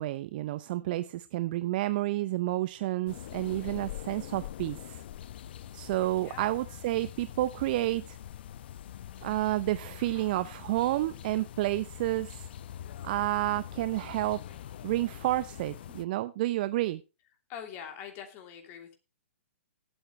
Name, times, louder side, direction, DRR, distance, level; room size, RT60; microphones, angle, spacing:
voice 1, 0.0-5.0 5.7-8.2 9.2-12.5 13.0-14.4 14.8-17.0, right 16 dB, 45° right, 14 dB, 0.6 m, -30 dB
sound 1, 3.1-16.0, left 11 dB, 55° left, 0.7 m, -44 dB
voice 2, 6.2-6.5 17.5-18.9, left 8 dB, 35° left, 4 dB, 3.0 m, -43 dB
18.5 x 8.8 x 3.1 m, 0.29 s
figure-of-eight pair, 125°, 7 cm